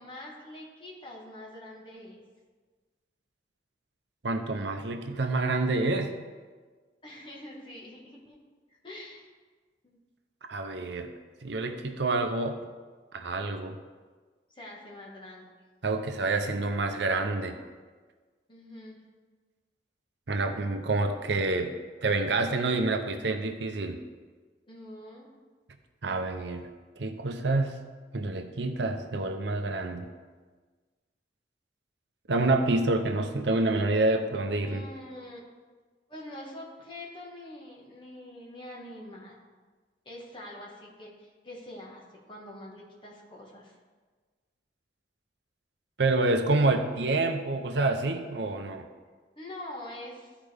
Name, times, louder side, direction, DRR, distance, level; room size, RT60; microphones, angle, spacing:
voice 1, 0.0-2.2 7.0-8.4 8.8-9.3 9.8-10.0 14.5-15.5 18.5-19.0 24.7-25.3 34.6-35.4 36.1-39.4 40.0-43.8 49.3-50.4, left 1 dB, 30° left, -3 dB, 1.6 m, -44 dB
voice 2, 4.2-6.1 10.5-11.1 11.4-12.6 13.1-13.8 15.8-17.6 20.3-21.7 22.0-24.0 26.0-26.7 27.0-27.8 28.1-30.1 32.3-34.8 46.0-48.8, right 2 dB, 75° right, 6 dB, 0.7 m, -27 dB
14.0 x 4.9 x 3.5 m, 1.4 s
head